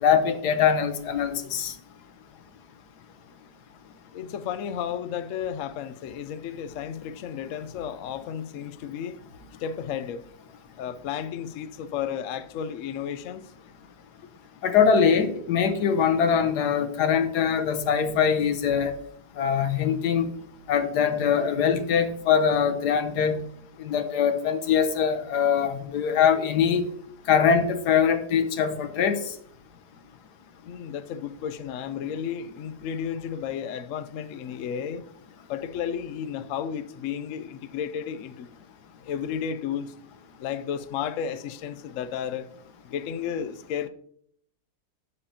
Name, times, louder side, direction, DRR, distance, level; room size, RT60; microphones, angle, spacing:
voice 1, 0.0-1.7 14.6-18.9 19.4-20.3 20.7-23.4 23.8-26.8 27.3-29.2, left 7 dB, 90° left, 1.5 m, -22 dB
voice 2, 4.1-9.2 9.6-10.2 10.8-13.5 30.7-35.0 35.5-38.5 39.0-39.9 40.4-42.5 42.9-43.9, left 8 dB, 65° left, 0.9 m, -33 dB
12.0 x 8.4 x 2.9 m
omnidirectional pair, 1.7 m